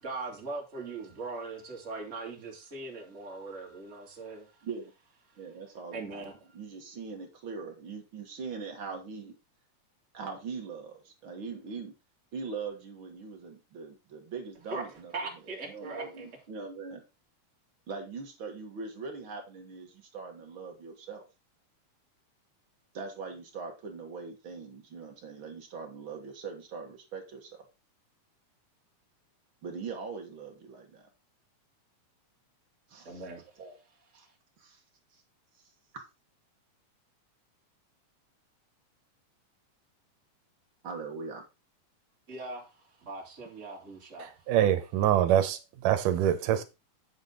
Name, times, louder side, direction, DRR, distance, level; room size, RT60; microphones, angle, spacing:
voice 1, 0.0-4.4 5.9-6.3 14.7-14.8 15.1-16.3 33.0-33.4 42.3-42.7 43.0-44.3, right 3 dB, 25° right, 2.9 m, -40 dB
voice 2, 5.4-6.2 6.5-9.3 10.1-11.9 12.3-15.1 15.7-17.0 17.9-21.2 22.9-27.6 29.6-31.1 32.9-33.2 33.6-33.8 34.1-34.3 34.6-34.8 35.1-35.2 40.8-41.4, right 5 dB, 45° right, 2.3 m, -41 dB
voice 3, 44.5-46.6, right 11 dB, 85° right, 2.6 m, -24 dB
8.1 x 7.4 x 3.9 m
omnidirectional pair, 3.6 m